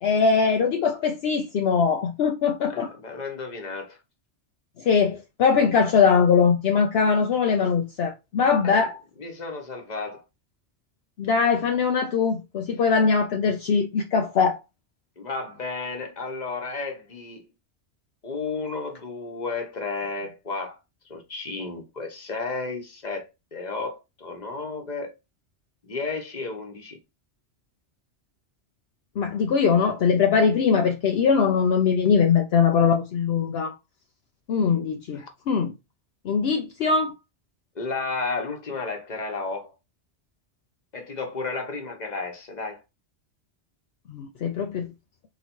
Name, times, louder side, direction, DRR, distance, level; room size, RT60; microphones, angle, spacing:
voice 1, 0.0-2.9 4.8-9.0 11.2-14.6 29.2-33.7 34.5-35.7 36.2-37.1 44.1-44.9, left 6 dB, 65° left, 0.8 m, -21 dB
voice 2, 2.7-4.0 8.6-8.9 9.2-10.2 15.2-17.5 18.2-20.8 21.1-25.1 25.8-27.0 35.1-35.3 37.7-39.7 40.9-42.8, left 3 dB, 40° left, 1.2 m, -33 dB
4.1 x 3.0 x 4.4 m
omnidirectional pair, 1.2 m